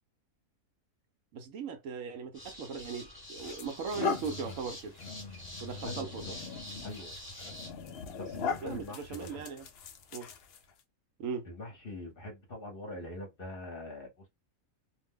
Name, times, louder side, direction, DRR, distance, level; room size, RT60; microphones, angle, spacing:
voice 1, 1.3-5.0 5.6-6.3 8.6-9.6 10.1-10.3 11.2-11.5, right 5 dB, 70° right, 1.0 m, -39 dB
sound 1, 2.3-7.7, left 1 dB, 20° left, 1.0 m, -47 dB
sound 2, 2.6-2.8 3.4-10.8, left 5 dB, 65° left, 0.6 m, -39 dB
voice 2, 5.8-6.3 6.8-7.2 8.2-9.5 11.4-14.3, left 2 dB, 45° left, 1.0 m, -43 dB
2.6 x 2.1 x 3.5 m
omnidirectional pair, 1.5 m